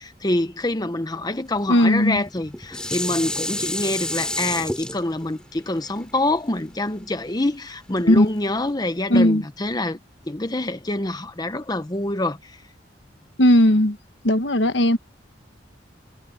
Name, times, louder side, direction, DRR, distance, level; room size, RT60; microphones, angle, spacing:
voice 1, 0.0-10.0 10.2-12.6, left 2 dB, 20° left, 1.0 m, -26 dB
voice 2, 1.7-2.2 8.0-8.3 9.1-9.4 13.4-14.0 14.2-15.0, left 1 dB, 75° left, 1.4 m, -17 dB
Dishes pots and pans, 2.1-7.4 8.0-8.1, left 1 dB, 5° left, 3.1 m, -30 dB
head